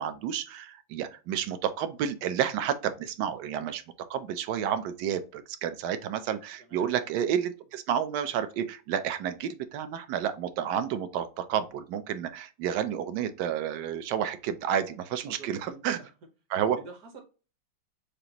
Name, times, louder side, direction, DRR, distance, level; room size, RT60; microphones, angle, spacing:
voice 1, 0.0-3.8 4.1-16.0 16.5-16.8, right 9 dB, 75° right, 1.0 m, -30 dB
voice 2, 6.6-7.0 15.2-16.1 16.6-17.2, right 3 dB, 55° right, 1.3 m, -48 dB
6.7 x 2.5 x 2.9 m
omnidirectional pair, 2.1 m